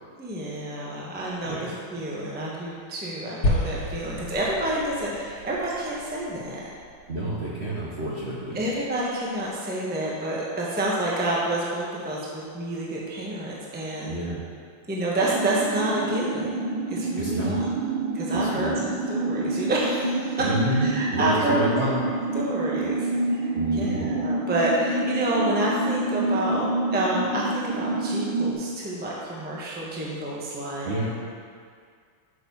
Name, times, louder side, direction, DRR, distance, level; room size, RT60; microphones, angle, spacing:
voice 1, 0.2-6.7 8.5-14.2 14.9-16.5 16.9-17.7 18.1-22.0 22.3-30.9, right 1 dB, 5° right, -4 dB, 0.8 m, -28 dB
sound 1, 3.4-7.8, left 1 dB, 80° left, 2.0 m, -31 dB
voice 2, 7.1-8.6 14.1-14.4 17.2-17.6 18.3-18.8 20.4-22.0 23.5-24.1 30.8-31.2, right 1 dB, 40° right, -6 dB, 1.1 m, -29 dB
sound 2, 15.2-28.5, right 2 dB, 85° right, 1.5 m, -27 dB
6.6 x 6.2 x 5.4 m, 2.1 s
omnidirectional pair, 2.1 m